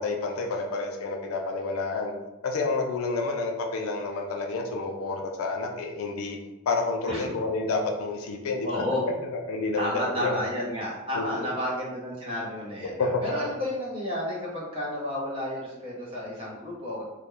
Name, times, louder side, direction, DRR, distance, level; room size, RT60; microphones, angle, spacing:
voice 1, 0.0-2.1 2.4-6.4 6.7-8.7 9.3-10.5 11.1-11.5 13.0-13.2, left 3 dB, 70° left, 2 dB, 0.4 m, -29 dB
voice 2, 7.1-7.4 8.6-9.0 9.8-17.0, left 1 dB, 25° right, -6 dB, 0.7 m, -31 dB
2.3 x 2.1 x 3.0 m, 1.1 s
head